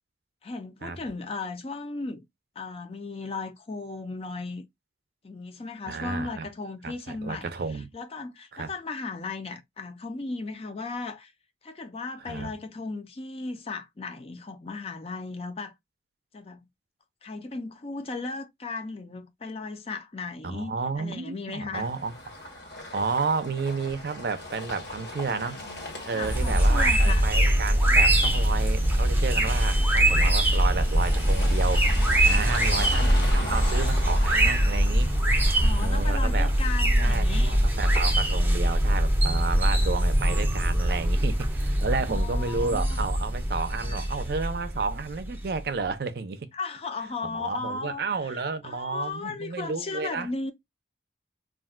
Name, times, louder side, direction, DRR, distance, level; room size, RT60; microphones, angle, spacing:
voice 1, 0.4-2.2 2.6-4.6 5.2-7.5 7.9-11.3 11.6-15.7 16.3-16.7 17.2-21.9 26.1-27.3 32.7-32.9 35.5-37.5 42.1-43.0 43.8-44.1 46.5-50.5, left 3 dB, 35° left, 0.4 m, -36 dB
voice 2, 5.9-6.5 6.8-7.9 8.5-8.7 12.3-12.5 20.4-22.1 22.9-25.6 26.1-31.9 32.2-35.1 35.8-36.5 37.0-46.5 47.3-50.3, right 4 dB, 60° right, 0.5 m, -31 dB
sound 1, 21.7-38.7, left 1 dB, 75° left, 1.3 m, -40 dB
sound 2, 26.2-45.6, right 1 dB, 10° right, 0.6 m, -23 dB
2.4 x 2.2 x 3.5 m
head